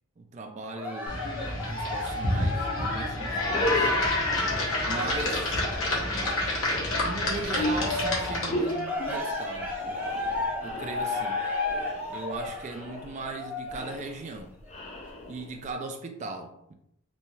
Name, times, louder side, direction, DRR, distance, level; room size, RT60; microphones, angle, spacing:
voice 1, 0.2-1.2 1.7-3.9 4.9-5.6 7.0-10.1 10.6-11.4 12.1-14.6 15.3-16.7, right 3 dB, 35° right, 5 dB, 0.3 m, -38 dB
Cheering, 0.7-7.1 7.4-14.0 14.6-14.7, left 2 dB, 10° right, 0.8 m, -34 dB
sound 1, 1.1-8.8, left 1 dB, 85° left, 0.8 m, -28 dB
sound 2, 2.9-3.0 3.4-15.7, left 1 dB, 30° left, 0.4 m, -36 dB
3.1 x 2.7 x 2.2 m, 0.77 s
head